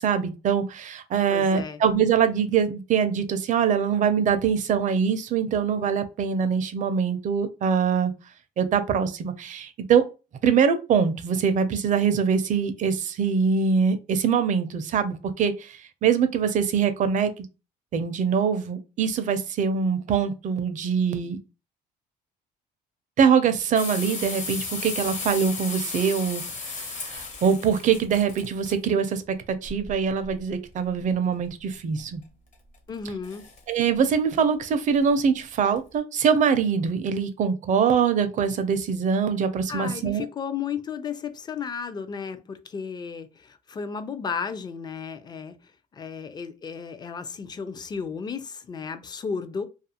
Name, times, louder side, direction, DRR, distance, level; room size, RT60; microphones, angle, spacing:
voice 1, 0.0-8.1 8.6-10.1 10.4-17.5 17.9-21.4 23.2-32.2 33.7-40.3, right 6 dB, 50° right, 0.4 m, -23 dB
voice 2, 1.3-1.8 32.9-33.5 39.7-49.7, left 6 dB, 25° left, 0.4 m, -34 dB
sound 1, 23.7-28.7 29.6-30.4 32.0-32.1 32.5-32.9 33.2-33.6 34.0-34.1 34.4-34.5 34.9-35.0 35.5-35.8, left 4 dB, 45° left, 0.8 m, -35 dB
2.4 x 2.4 x 2.7 m
cardioid pair, 110°, 17 cm